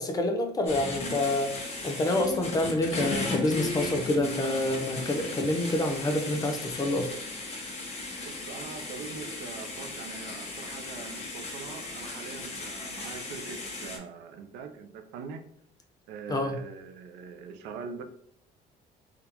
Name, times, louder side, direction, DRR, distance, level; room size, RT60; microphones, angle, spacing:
voice 1, 0.0-7.1 16.3-16.6, left 1 dB, 20° left, 5 dB, 0.5 m, -27 dB
sound 1, 0.7-14.0, left 3 dB, 40° left, 0.9 m, -36 dB
voice 2, 8.2-15.4 16.1-18.0, right 5 dB, 80° right, 7 dB, 0.5 m, -43 dB
3.5 x 2.4 x 2.9 m, 0.68 s
cardioid pair, 110°, 17 cm